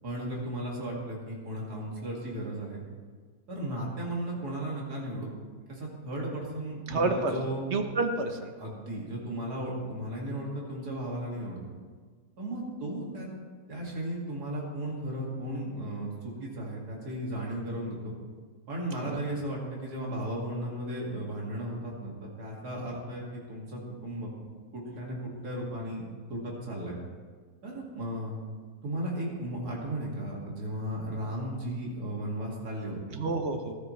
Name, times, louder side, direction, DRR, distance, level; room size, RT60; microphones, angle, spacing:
voice 1, 0.0-2.8 3.5-5.3 5.7-7.7 8.6-11.6 12.4-13.3 13.7-18.1 18.7-24.3 24.7-27.0 27.6-28.4 28.8-33.0, right 1 dB, 80° right, -3 dB, 2.8 m, -35 dB
voice 2, 6.9-7.4 7.7-8.7 19.0-19.2 33.1-33.7, right 3 dB, 50° right, 5 dB, 1.1 m, -29 dB
15.5 x 12.5 x 3.2 m, 1.5 s
omnidirectional pair, 1.6 m